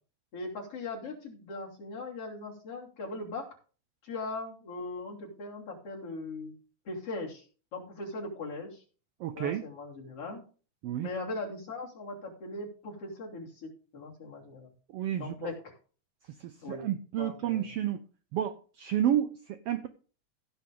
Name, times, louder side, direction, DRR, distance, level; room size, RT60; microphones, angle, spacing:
voice 1, 0.3-3.5 4.0-6.5 6.9-7.5 7.7-8.8 9.4-10.4 11.0-14.7 15.2-15.7 16.6-16.9 17.1-17.7, left 3 dB, 50° left, -3 dB, 3.9 m, -39 dB
voice 2, 9.2-9.6 10.8-11.1 14.9-15.5 16.4-18.0 18.3-19.9, right 11 dB, 80° right, 10 dB, 1.4 m, -31 dB
15.5 x 6.8 x 3.7 m, 0.38 s
omnidirectional pair, 3.3 m